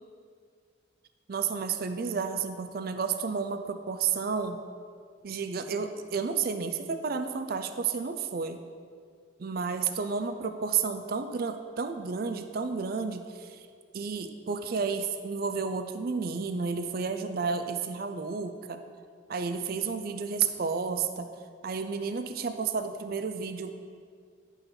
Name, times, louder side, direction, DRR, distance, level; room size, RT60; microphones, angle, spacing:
voice 1, 1.3-4.6 5.2-8.6 9.4-13.6 13.9-18.8 19.3-21.3 21.6-23.8, right 5 dB, 50° right, 8 dB, 0.4 m, -31 dB
10.5 x 5.6 x 4.0 m, 2.1 s
head